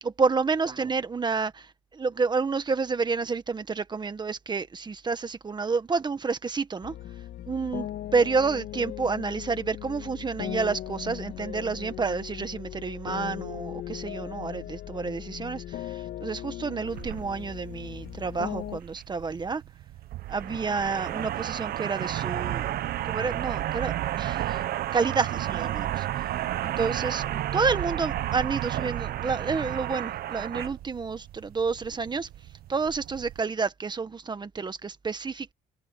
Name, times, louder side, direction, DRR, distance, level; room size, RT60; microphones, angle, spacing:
voice 1, 0.0-6.9 7.5-7.9 8.1-19.6 20.3-22.8 23.0-24.6 24.9-26.0 26.6-32.3 32.7-35.5, right 4 dB, 25° right, 1.5 m, -29 dB
sound 1, 6.8-18.8, left 12 dB, 70° left, 2.3 m, -38 dB
sound 2, 16.8-33.4, right 13 dB, 65° right, 1.0 m, -32 dB
cardioid pair, 110°, 17 cm